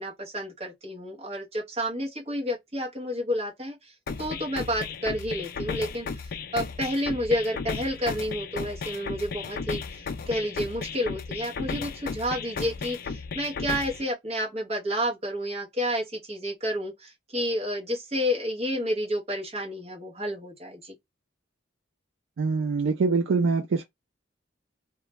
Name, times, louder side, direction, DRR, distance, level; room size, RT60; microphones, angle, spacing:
voice 1, 0.0-20.9, equal, 30° right, 0.8 m, -30 dB
sound 1, 4.1-14.1, left 5 dB, 50° left, 0.3 m, -35 dB
voice 2, 22.4-23.8, right 4 dB, 75° right, 0.4 m, -24 dB
2.3 x 2.1 x 2.8 m
head